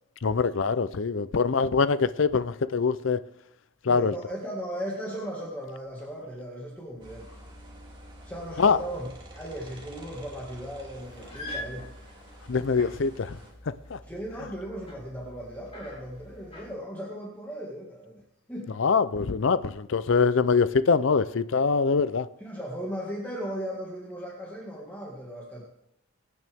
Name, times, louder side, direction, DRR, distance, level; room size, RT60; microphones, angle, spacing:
voice 1, 0.2-3.2 3.8-4.1 8.6-8.8 12.5-13.4 13.9-14.0 18.8-22.3, left 5 dB, 60° left, 0.5 m, -23 dB
voice 2, 3.9-7.3 8.2-11.9 14.0-18.2 18.5-18.7 22.4-25.6, equal, 10° left, 2.0 m, -37 dB
sound 1, 7.0-13.5, equal, 25° right, 2.5 m, -47 dB
sound 2, 10.9-16.7, left 1 dB, 30° left, 4.1 m, -44 dB
23.5 x 9.4 x 3.6 m
head